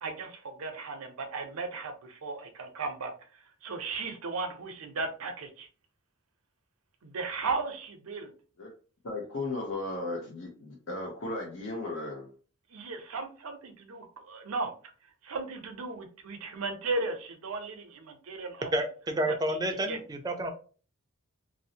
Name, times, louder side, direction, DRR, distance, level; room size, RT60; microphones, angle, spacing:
voice 1, 0.0-5.7 7.0-8.3 12.7-14.7 15.2-18.7 19.2-20.0, right 3 dB, 90° right, 6 dB, 0.6 m, -36 dB
voice 2, 9.0-12.3, left 2 dB, 65° left, -3 dB, 0.7 m, -35 dB
voice 3, 18.7-20.5, right 1 dB, 20° right, 5 dB, 0.3 m, -30 dB
2.6 x 2.0 x 2.7 m, 0.39 s
head